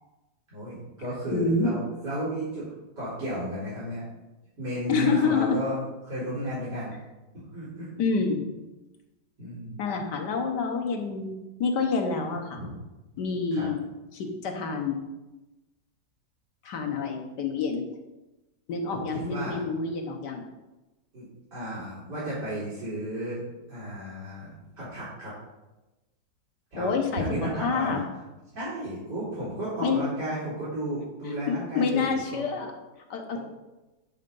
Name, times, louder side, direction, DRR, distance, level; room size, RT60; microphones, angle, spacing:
voice 1, 0.5-2.7 3.0-4.1 4.6-6.9 7.3-7.9 9.4-9.8 12.5-12.7 13.5-13.7 18.9-19.6 21.1-23.4 23.7-25.3 26.7-28.0 28.5-32.4, right 1 dB, 70° right, -11 dB, 3.8 m, -33 dB
voice 2, 1.3-1.7 4.9-5.6 8.0-8.4 9.8-12.6 13.2-13.8 14.1-15.0 16.6-17.8 18.7-20.4 26.7-28.0 29.8-30.0 31.5-32.7 33.1-33.4, left 4 dB, 70° left, 3 dB, 1.7 m, -27 dB
10.5 x 4.3 x 5.4 m, 1.1 s
omnidirectional pair, 1.9 m